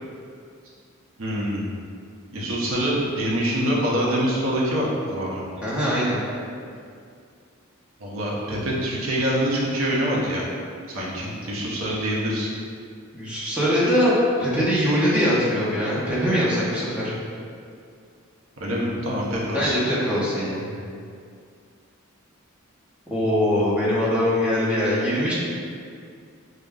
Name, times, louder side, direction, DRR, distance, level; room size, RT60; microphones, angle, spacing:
voice 1, 1.2-1.7 2.3-5.5 8.0-10.5 10.9-12.5 18.6-19.8, equal, 70° right, -5 dB, 0.7 m, -25 dB
voice 2, 5.6-6.2 13.1-14.1 14.4-17.1 19.5-20.7 23.1-25.3, equal, 5° right, -9 dB, 0.8 m, -22 dB
5.1 x 2.2 x 2.3 m, 2.3 s
head